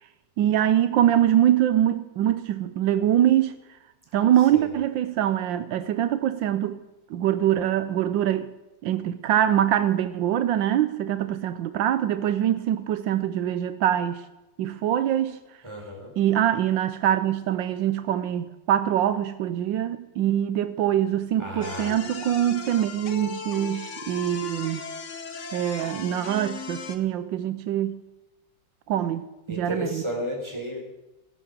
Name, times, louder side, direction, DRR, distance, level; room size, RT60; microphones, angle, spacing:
voice 1, 0.4-3.5 4.1-6.8 7.1-8.5 8.8-14.2 14.6-15.4 16.2-24.8 25.5-28.0 28.9-30.0, right 11 dB, 85° right, 1.4 m, -24 dB
voice 2, 15.6-16.1 21.4-21.9 29.5-30.8, equal, 15° right, 4.3 m, -33 dB
sound 1, 21.6-27.0, left 5 dB, 45° left, 1.4 m, -37 dB
16.5 x 10.5 x 6.7 m
omnidirectional pair, 2.0 m